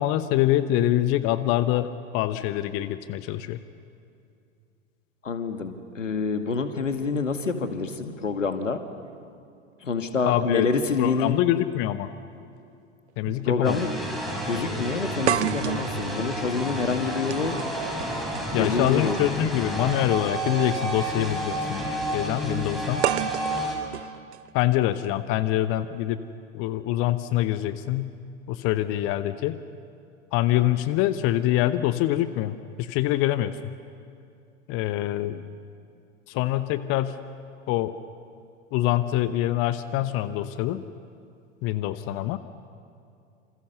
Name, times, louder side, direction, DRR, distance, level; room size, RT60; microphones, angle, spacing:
voice 1, 0.0-3.6 10.3-10.7 11.0-12.1 13.2-13.8 18.5-23.1 24.5-26.2 26.5-28.1 28.5-29.6 30.3-33.6 34.7-35.4 36.3-37.2 37.7-37.9 38.7-40.8 41.6-42.4, left 14 dB, 35° left, 12 dB, 1.0 m, -25 dB
voice 2, 5.2-8.8 9.8-11.4 13.4-13.9 14.5-17.6 18.5-19.2 35.2-35.4, left 4 dB, 75° left, 7 dB, 2.1 m, -27 dB
sound 1, 12.0-12.1 13.3-13.4 13.8-13.9 15.3-19.3 20.5-20.6 23.0-25.0, right 12 dB, 60° right, 0.7 m, -31 dB
sound 2, 13.6-23.8, right 1 dB, ahead, 6.1 m, -30 dB
28.0 x 27.5 x 6.9 m, 2.5 s
figure-of-eight pair, 90°, 38 cm